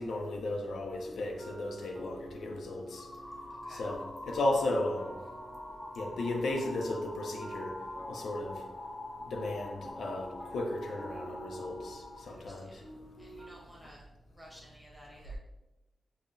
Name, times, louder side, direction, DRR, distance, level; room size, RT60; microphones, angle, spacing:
voice 1, 0.0-3.0 3.7-5.1 6.0-7.7 8.1-8.6 9.3-10.3 10.5-12.7, left 2 dB, 85° left, 2 dB, 0.4 m, -34 dB
sound 1, 1.0-13.5, right 1 dB, 15° right, 0.6 m, -50 dB
sound 2, 2.9-12.2, left 1 dB, 20° left, 0.4 m, -44 dB
voice 2, 12.2-12.9 13.2-15.4, equal, ahead, -4 dB, 1.1 m, -55 dB
5.4 x 2.0 x 2.5 m, 1.0 s
wide cardioid pair, 115°, 0 cm